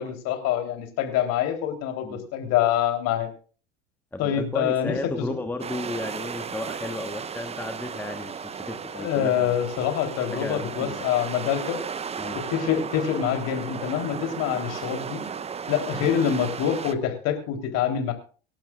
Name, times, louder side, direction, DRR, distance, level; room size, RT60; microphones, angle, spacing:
voice 1, 0.0-3.3 4.2-5.4 9.0-11.8 12.3-15.2 15.7-18.1, left 9 dB, 50° left, 5 dB, 3.7 m, -26 dB
voice 2, 4.1-9.5 10.3-11.0 12.2-12.4, left 2 dB, 5° left, 7 dB, 1.3 m, -34 dB
sound 1, 5.6-16.9, right 6 dB, 20° right, 0.8 m, -35 dB
25.0 x 11.5 x 2.5 m, 0.38 s
figure-of-eight pair, 75°, 35 cm